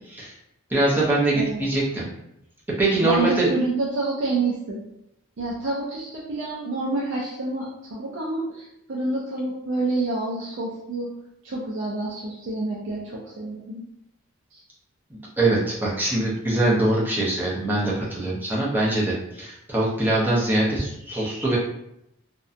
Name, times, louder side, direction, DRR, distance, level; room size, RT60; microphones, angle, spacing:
voice 1, 0.7-2.1 2.8-3.5 15.4-21.6, right 2 dB, 10° right, -6 dB, 0.6 m, -23 dB
voice 2, 1.3-1.7 3.0-4.8 5.4-11.1 11.4-13.9 14.5-14.6, right 2 dB, 55° right, -4 dB, 0.4 m, -28 dB
2.7 x 2.1 x 2.4 m, 0.83 s
head